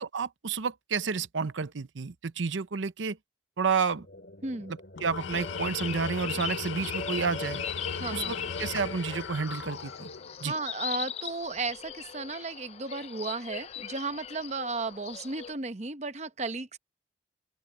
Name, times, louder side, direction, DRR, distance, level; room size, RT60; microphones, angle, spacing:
voice 1, 0.0-3.2 3.6-4.1 5.0-7.6 8.1-10.1 10.4-10.5, right 5 dB, 80° right, 0.7 m, -30 dB
sound 1, 3.7-11.2, left 1 dB, 55° left, 3.3 m, -51 dB
voice 2, 4.4-4.8 7.9-8.4 10.4-16.8, right 3 dB, 35° right, 0.8 m, -34 dB
Tools, 4.9-10.3, left 5 dB, 80° left, 0.6 m, -37 dB
sound 2, 5.2-15.5, left 8 dB, 35° left, 0.4 m, -40 dB
open air
head